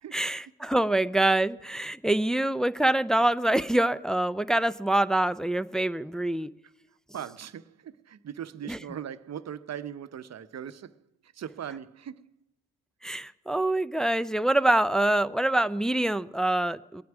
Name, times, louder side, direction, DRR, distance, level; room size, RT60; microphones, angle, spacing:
voice 1, 0.1-6.5 8.7-8.8 13.0-17.0, right 1 dB, ahead, 0.4 m, -25 dB
voice 2, 7.1-12.3, right 9 dB, 40° right, 0.8 m, -40 dB
21.0 x 9.4 x 6.0 m
hypercardioid pair, 50°, 39 cm